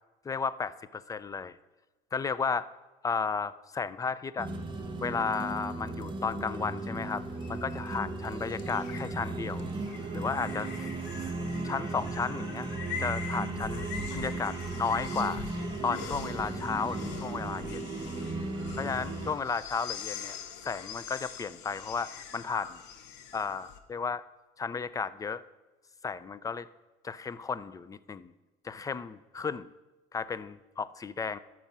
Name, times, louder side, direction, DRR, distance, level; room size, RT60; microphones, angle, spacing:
voice 1, 0.2-1.6 2.1-2.7 3.0-4.5 5.0-7.2 7.5-9.7 10.1-10.9 11.2-11.3 11.6-12.7 13.0-15.4 15.8-17.9 18.8-20.4 20.6-22.8 23.3-24.2 24.6-25.4 26.0-26.7 27.0-28.3 28.6-29.7 30.1-31.4, left 5 dB, 20° left, 16 dB, 0.4 m, -33 dB
sound 1, 4.4-19.3, right 3 dB, 25° right, 1.1 m, -36 dB
sound 2, 6.8-23.8, left 7 dB, 75° left, 0.8 m, -44 dB
11.5 x 6.2 x 5.5 m, 1.1 s
cardioid pair, 110°, 18 cm